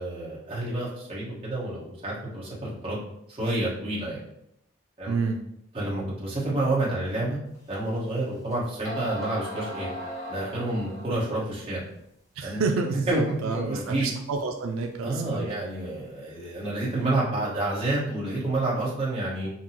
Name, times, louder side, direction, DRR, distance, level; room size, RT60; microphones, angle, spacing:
voice 1, 0.0-3.0 3.3-4.2 5.0-5.2 5.7-7.4 7.7-9.9 10.3-11.8 12.4-12.6 12.9-14.1 15.0-19.5, right 2 dB, 25° right, -7 dB, 1.3 m, -29 dB
sound 1, 7.7-7.8 8.5-8.6 8.8-11.3, right 1 dB, 15° left, 0.9 m, -36 dB
voice 2, 12.4-15.5, right 4 dB, 85° right, 3 dB, 0.4 m, -29 dB
5.8 x 2.3 x 2.9 m, 0.79 s
head